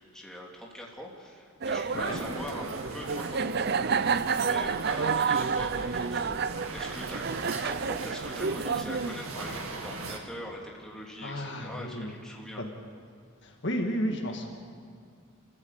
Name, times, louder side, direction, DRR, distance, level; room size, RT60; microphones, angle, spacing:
voice 1, 0.1-7.3 7.6-12.6, equal, 5° left, -3 dB, 2.7 m, -42 dB
sound 1, 1.6-9.2, right 5 dB, 50° right, 0.5 m, -30 dB
sound 2, 1.9-10.2, right 3 dB, 75° right, 2.3 m, -39 dB
voice 2, 11.2-12.1 12.6-12.7 13.4-14.5, equal, 55° left, 2 dB, 2.1 m, -32 dB
27.5 x 14.5 x 8.2 m, 2.1 s
head